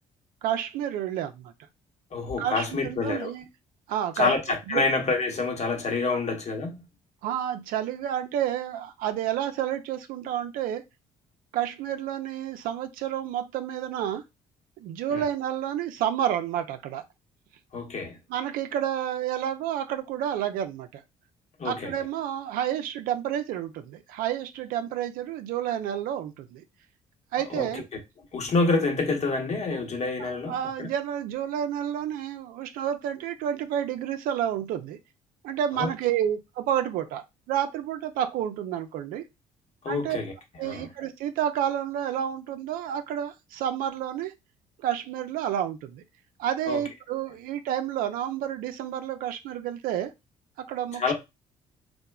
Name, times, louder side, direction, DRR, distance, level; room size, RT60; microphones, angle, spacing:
voice 1, 0.4-1.5 2.4-3.5 3.9-4.3 4.7-4.9 6.1-6.2 7.2-10.8 11.5-14.2 14.8-17.0 18.3-21.0 21.6-26.6 27.3-27.8 30.2-35.0 35.4-39.2 39.9-40.2 40.6-44.3 44.8-46.0 46.4-50.1 50.7-51.1, right 10 dB, 70° right, 0.4 m, -30 dB
voice 2, 2.1-3.3 4.2-6.8 15.1-15.2 17.7-18.2 21.6-21.9 27.5-27.7 28.3-30.5 30.8-30.9 35.7-35.9 39.8-40.3 40.6-40.8 46.7-46.8 51.0-51.1, left 3 dB, 45° left, 1.0 m, -27 dB
2.8 x 2.1 x 2.3 m
hypercardioid pair, 55°, 15 cm